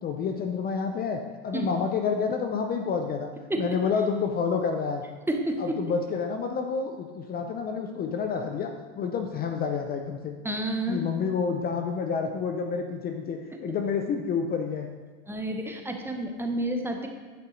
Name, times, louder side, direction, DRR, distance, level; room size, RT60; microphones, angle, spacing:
voice 1, 0.0-3.3 3.6-5.0 5.6-10.3 10.9-14.9, left 5 dB, 25° left, 4 dB, 0.5 m, -29 dB
voice 2, 5.3-5.8 10.4-11.0 15.3-17.1, right 1 dB, 5° right, 3 dB, 0.7 m, -29 dB
10.5 x 5.4 x 3.9 m, 1.5 s
supercardioid pair, 115°, 36 cm